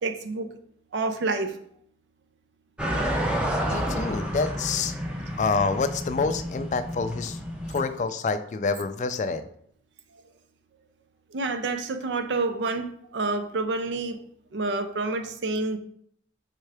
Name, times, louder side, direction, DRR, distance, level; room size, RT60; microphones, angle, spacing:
voice 1, 0.0-0.5 0.9-1.6 11.3-14.2 14.5-15.8, right 3 dB, 80° right, 0.5 m, -28 dB
sound 1, 2.8-7.8, equal, 5° right, 0.6 m, -30 dB
voice 2, 3.7-4.9 5.4-7.4 7.7-9.5, left 4 dB, 40° left, 0.3 m, -27 dB
4.4 x 3.6 x 3.3 m
head